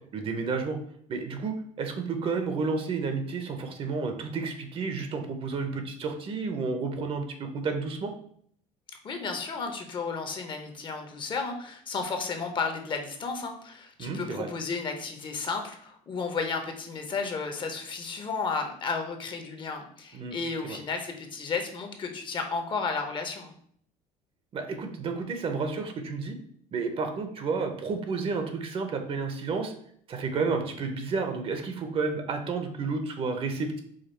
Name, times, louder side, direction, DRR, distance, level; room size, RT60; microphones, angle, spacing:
voice 1, 0.1-0.8 1.1-8.1 14.0-14.5 20.1-20.4 20.6-20.8 24.5-26.4 26.7-29.7 30.1-33.8, right 4 dB, 40° right, 6 dB, 0.7 m, -31 dB
voice 2, 9.0-23.5, left 4 dB, 35° left, 5 dB, 0.7 m, -33 dB
4.9 x 2.3 x 4.3 m, 0.63 s
cardioid pair, 130°, 15 cm